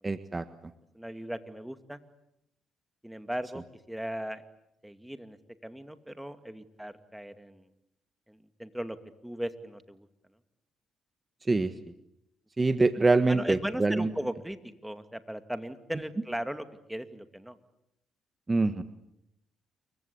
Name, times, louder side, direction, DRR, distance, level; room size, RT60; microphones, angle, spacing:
voice 1, 0.0-0.4 11.4-11.7 12.6-14.1 18.5-18.8, right 3 dB, 20° right, 10 dB, 1.5 m, -25 dB
voice 2, 0.9-2.0 3.0-3.6 3.9-4.4 4.8-5.4 5.6-7.7 8.3-9.0 9.2-10.1 13.3-17.6, equal, 5° right, 9 dB, 2.4 m, -37 dB
29.0 x 23.5 x 8.7 m, 0.82 s
cardioid pair, 90°, 0 cm